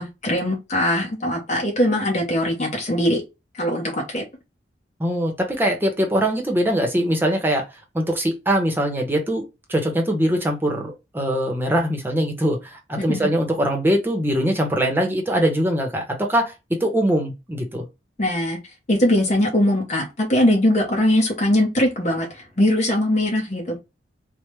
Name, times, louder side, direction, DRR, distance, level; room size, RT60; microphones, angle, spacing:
voice 1, 0.0-3.2 3.5-4.2 13.1-13.3 18.2-18.6 18.9-23.8, left 1 dB, 45° left, 0.8 m, -21 dB
voice 2, 5.0-7.6 7.9-9.4 9.7-16.5 16.8-17.8, equal, 10° right, 0.8 m, -22 dB
3.3 x 2.1 x 3.0 m
head